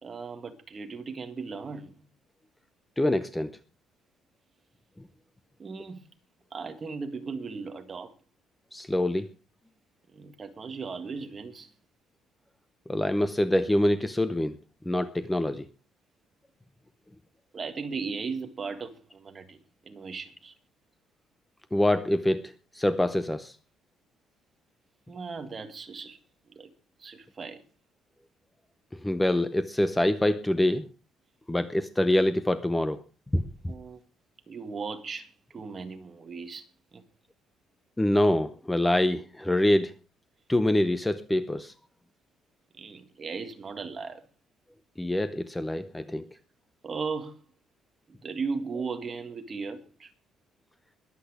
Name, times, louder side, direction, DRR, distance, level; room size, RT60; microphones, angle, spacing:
voice 1, 0.0-2.1 5.6-6.1 6.5-8.1 10.1-11.7 17.5-20.5 25.1-26.2 26.5-26.7 27.0-27.6 33.7-34.0 34.5-36.7 36.9-37.0 42.7-44.2 46.8-47.4 48.2-50.1, right 4 dB, 25° right, 1.8 m, -37 dB
voice 2, 3.0-3.5 8.7-9.3 12.9-14.6 14.9-15.7 21.7-23.6 29.0-30.9 31.5-33.0 33.3-33.7 38.0-39.9 40.5-41.7 45.0-46.2, left 1 dB, 5° left, 0.7 m, -25 dB
21.5 x 8.4 x 4.9 m
cardioid pair, 160°, 0 cm